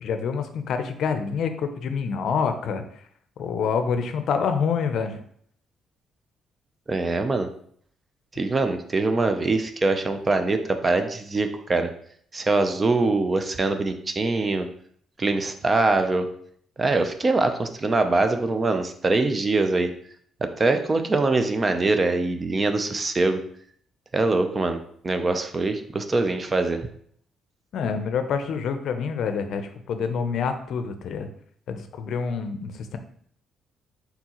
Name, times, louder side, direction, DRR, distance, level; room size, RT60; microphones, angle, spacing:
voice 1, 0.0-2.8 3.4-5.2 27.7-31.3 31.7-33.0, left 6 dB, 70° left, 8 dB, 0.5 m, -27 dB
voice 2, 6.9-7.5 8.3-11.9 12.3-14.7 15.2-16.3 16.8-19.9 20.4-23.4 24.1-24.8 25.0-26.9, right 3 dB, 30° right, 7 dB, 0.5 m, -23 dB
4.4 x 3.9 x 2.9 m, 0.62 s
cardioid pair, 90°, 0 cm